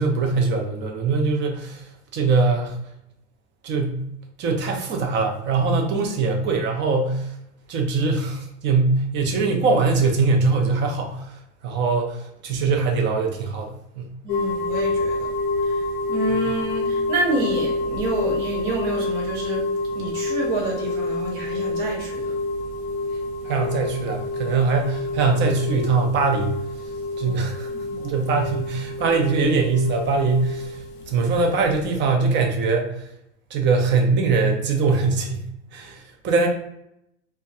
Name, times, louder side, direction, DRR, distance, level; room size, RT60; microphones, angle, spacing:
voice 1, 0.0-1.8 2.1-2.8 3.6-4.0 4.4-7.3 7.7-11.4 11.6-14.1 16.3-16.4 23.4-26.6 27.2-27.7 28.0-30.8 31.1-33.0 33.5-35.4 35.7-36.5, right 4 dB, 35° right, 2 dB, 0.6 m, -22 dB
voice 2, 14.2-15.2 15.6-19.7 19.9-22.3 27.2-27.4 27.6-28.2, right 1 dB, 55° right, -1 dB, 1.1 m, -28 dB
sound 1, 14.3-32.0, left 2 dB, 50° left, 0.5 m, -28 dB
2.2 x 2.2 x 2.6 m, 0.77 s
hypercardioid pair, 105°, 33 cm